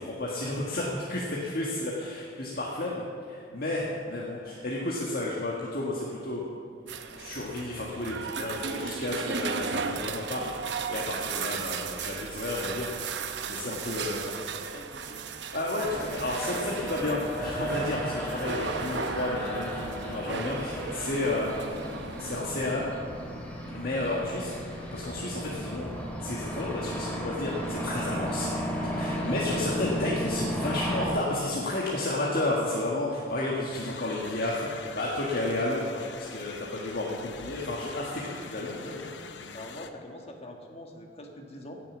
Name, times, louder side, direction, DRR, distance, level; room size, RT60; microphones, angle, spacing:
voice 1, 0.0-6.5 7.1-14.2 15.5-21.8 22.2-22.9 23.7-25.9 26.2-39.1, left 2 dB, 60° left, -4 dB, 1.7 m, -32 dB
sound 1, 6.9-22.4, right 5 dB, 75° right, 0.7 m, -36 dB
voice 2, 13.8-15.2 39.5-41.8, left 1 dB, 35° left, 3 dB, 1.6 m, -45 dB
sound 2, 15.8-31.1, equal, 5° left, 2.9 m, -34 dB
sound 3, 33.7-39.9, left 5 dB, 85° left, 0.8 m, -44 dB
17.0 x 7.0 x 7.3 m, 2.4 s
head